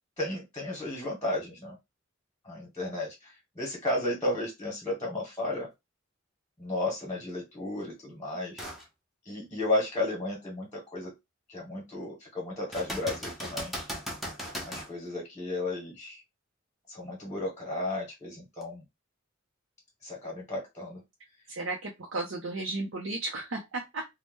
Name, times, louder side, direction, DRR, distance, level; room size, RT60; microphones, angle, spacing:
voice 1, 0.2-1.8 2.4-5.7 6.6-8.6 9.3-11.1 11.5-13.7 14.6-16.2 16.9-18.8 20.0-21.0, left 2 dB, 15° left, -1 dB, 1.2 m, -33 dB
sound 1, 8.6-8.9 9.4-9.5 12.7-14.9 18.6-18.7, equal, ahead, 0.9 m, -37 dB
voice 2, 21.5-24.1, right 2 dB, 80° right, -1 dB, 0.7 m, -34 dB
2.7 x 2.2 x 3.5 m, 0.20 s
head